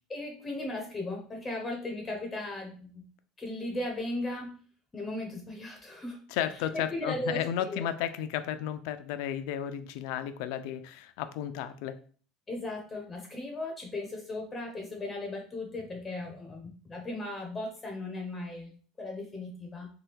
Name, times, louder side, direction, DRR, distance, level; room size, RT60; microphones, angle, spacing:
voice 1, 0.1-3.0 3.4-4.5 4.9-6.2 6.9-7.9 12.5-18.7 19.0-19.9, left 2 dB, 15° left, 1 dB, 0.5 m, -37 dB
voice 2, 6.3-12.0, left 10 dB, 70° left, 11 dB, 0.3 m, -33 dB
2.8 x 2.2 x 3.4 m, 0.43 s
cardioid pair, 155°, 0 cm